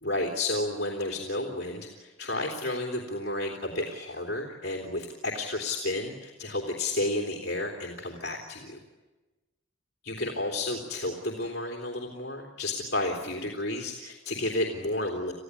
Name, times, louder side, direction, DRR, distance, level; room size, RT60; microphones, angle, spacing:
voice 1, 0.0-8.8 10.0-15.3, left 2 dB, 55° left, 0 dB, 3.2 m, -31 dB
30.0 x 16.0 x 9.7 m, 1.2 s
head